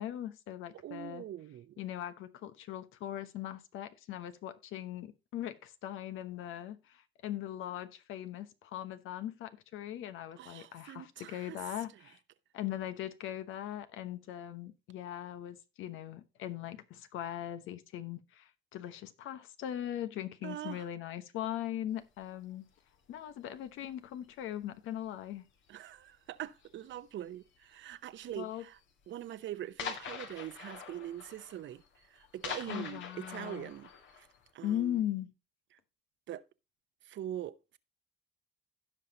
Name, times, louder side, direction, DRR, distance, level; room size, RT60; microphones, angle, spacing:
voice 1, 0.0-1.2 1.8-12.2 12.5-22.7 23.1-25.4 28.3-28.6 32.7-33.7 34.6-35.3, left 12 dB, 90° left, 1.1 m, -40 dB
voice 2, 0.7-1.8 10.4-11.6 20.4-20.8 25.7-28.8 29.1-31.8 32.1-33.9 34.2-34.3 34.5-35.0 36.3-36.4 37.1-37.8, right 12 dB, 70° right, 0.8 m, -43 dB
sound 1, 22.2-22.4 23.1-23.6 23.8-24.3 24.6-24.9 25.3-25.4 25.7-25.8 26.6-27.0 27.9-28.0 28.3-28.4 28.8-28.9 29.2-29.3 29.8-34.5, left 6 dB, 70° left, 2.0 m, -44 dB
16.5 x 5.5 x 2.8 m
cardioid pair, 90°, 20 cm